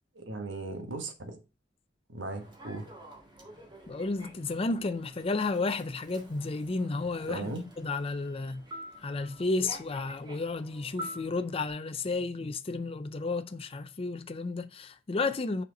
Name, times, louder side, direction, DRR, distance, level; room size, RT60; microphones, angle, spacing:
voice 1, 0.1-1.4 2.1-2.9 7.3-7.7, right 2 dB, 70° right, 1.5 m, -37 dB
Human voice / Subway metro underground, 2.3-11.7, equal, 25° right, 1.8 m, -48 dB
voice 2, 3.9-8.6 9.0-15.6, left 3 dB, 30° left, 0.5 m, -32 dB
6.6 x 4.3 x 5.2 m
head